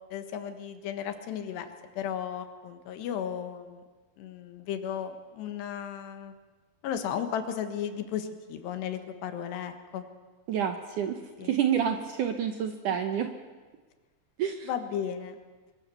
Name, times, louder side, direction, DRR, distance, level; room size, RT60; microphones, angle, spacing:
voice 1, 0.1-1.7 2.0-3.8 4.2-6.4 6.8-10.1 11.4-11.5 14.6-15.4, left 9 dB, 80° left, 8 dB, 3.7 m, -35 dB
voice 2, 10.5-11.2 11.5-13.3 14.4-14.7, right 8 dB, 70° right, 6 dB, 2.1 m, -28 dB
23.0 x 23.0 x 7.1 m, 1.3 s
omnidirectional pair, 4.8 m